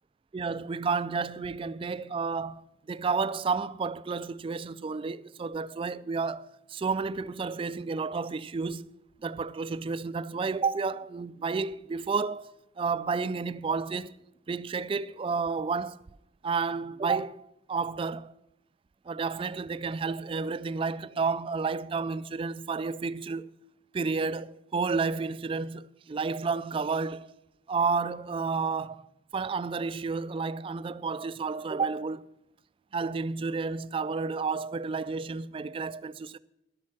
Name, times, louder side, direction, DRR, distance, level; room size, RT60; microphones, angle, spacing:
voice 1, 0.3-8.9 9.2-14.2 14.5-16.0 16.4-17.4 17.7-18.3 19.1-23.5 23.9-27.3 27.7-29.1 29.3-32.3 32.9-36.4, right 4 dB, 30° right, 0.3 m, -31 dB
12.0 x 8.7 x 5.9 m
head